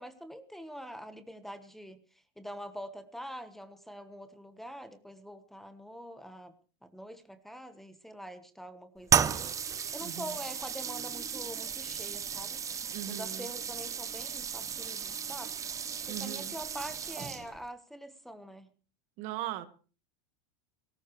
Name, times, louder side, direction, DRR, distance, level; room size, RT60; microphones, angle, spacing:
voice 1, 0.0-6.5 6.9-12.6 13.1-15.5 16.0-18.7, equal, ahead, 9 dB, 1.2 m, -45 dB
sound 1, 9.1-17.7, right 7 dB, 20° right, 0.8 m, -34 dB
voice 2, 10.0-10.3 12.9-13.5 16.1-16.5 19.2-19.7, right 13 dB, 50° right, 11 dB, 1.7 m, -39 dB
19.0 x 18.0 x 3.2 m, 0.37 s
supercardioid pair, 140°, 16 cm